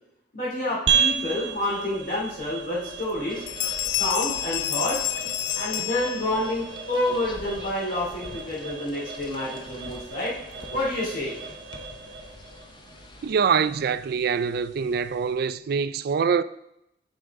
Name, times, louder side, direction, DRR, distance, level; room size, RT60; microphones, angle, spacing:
voice 1, 0.3-3.4 3.9-5.0 5.5-10.3 10.7-11.4, left 1 dB, 55° left, 2.7 m, -28 dB
sound 1, 0.9-15.5, right 6 dB, 90° right, 0.7 m, -34 dB
Bell, 2.4-2.5 3.0-3.2 3.5-6.6, left 13 dB, 70° left, 0.3 m, -29 dB
sound 2, 3.3-13.3, left 2 dB, 25° left, 0.6 m, -45 dB
voice 2, 13.2-16.4, right 6 dB, 60° right, 0.3 m, -24 dB
9.7 x 5.1 x 3.6 m
head